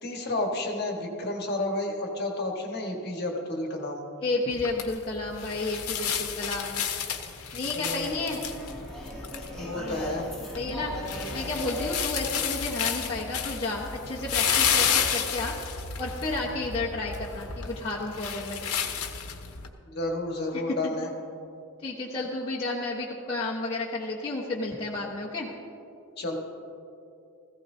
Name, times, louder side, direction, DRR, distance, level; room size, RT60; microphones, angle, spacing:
voice 1, 0.0-4.0 7.8-8.3 9.6-10.3 12.3-12.6 19.9-21.1 26.2-26.3, left 2 dB, 45° left, 0 dB, 1.6 m, -31 dB
voice 2, 4.2-6.8 7.5-8.4 10.5-10.9 11.3-15.5 16.0-18.9 20.5-20.9 21.8-25.5, left 2 dB, 25° left, -6 dB, 1.2 m, -32 dB
sound 1, 4.5-19.7, left 7 dB, 80° left, 1.0 m, -31 dB
sound 2, 8.0-13.2, equal, ahead, 2.4 m, -38 dB
17.0 x 15.5 x 2.8 m, 2.7 s
head